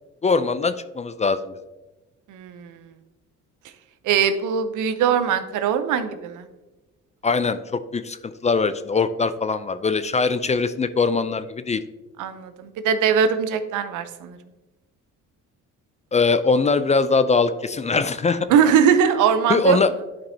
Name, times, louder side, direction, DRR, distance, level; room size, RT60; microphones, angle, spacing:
voice 1, 0.2-1.6 7.2-11.8 16.1-18.5 19.5-19.9, left 4 dB, 25° left, 13 dB, 0.4 m, -22 dB
voice 2, 2.3-2.7 4.0-6.5 12.2-14.4 18.5-19.8, right 7 dB, 85° right, 10 dB, 0.7 m, -21 dB
10.0 x 5.2 x 2.7 m, 1.1 s
cardioid pair, 90°, 30 cm